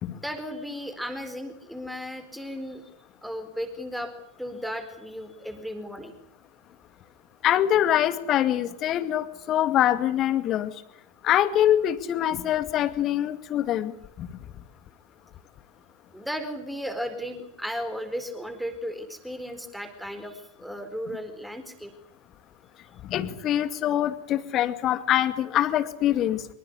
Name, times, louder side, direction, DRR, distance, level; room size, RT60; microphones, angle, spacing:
voice 1, 0.2-2.8 3.2-4.1 4.4-6.1 16.1-21.9, equal, ahead, 8 dB, 4.3 m, -35 dB
voice 2, 7.4-10.8 11.2-14.3 23.0-26.5, left 11 dB, 30° left, 12 dB, 2.2 m, -24 dB
25.5 x 25.0 x 8.2 m, 0.76 s
figure-of-eight pair, 90°, 0 cm